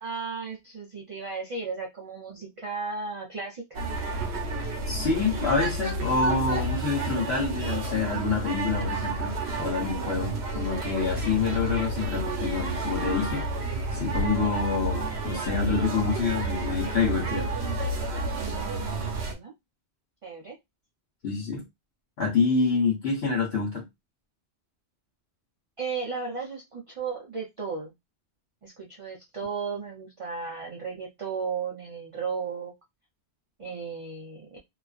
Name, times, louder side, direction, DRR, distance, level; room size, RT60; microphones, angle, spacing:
voice 1, 0.0-3.8 18.4-19.5 20.2-20.5 25.8-27.9 28.6-32.7 33.6-34.6, right 5 dB, 55° right, 0.3 m, -35 dB
sound 1, 3.7-19.3, right 2 dB, 70° right, 0.9 m, -30 dB
voice 2, 4.9-17.5 21.2-21.6 22.2-23.8, left 4 dB, 70° left, 1.0 m, -27 dB
2.4 x 2.3 x 2.3 m
omnidirectional pair, 1.2 m